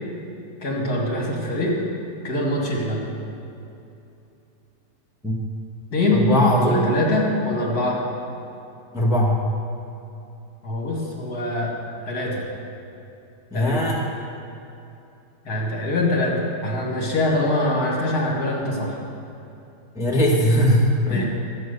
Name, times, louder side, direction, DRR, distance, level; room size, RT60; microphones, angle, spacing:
voice 1, 0.6-1.8 2.2-3.1 5.9-6.3 6.6-8.0 10.6-11.7 12.1-12.5 13.5-13.8 15.5-19.0 21.1-21.2, left 1 dB, 60° left, -3 dB, 2.9 m, -23 dB
voice 2, 6.1-6.8 8.9-9.4 13.5-14.0 19.9-21.2, equal, ahead, -2 dB, 1.3 m, -19 dB
13.0 x 8.4 x 6.8 m, 2.8 s
omnidirectional pair, 1.9 m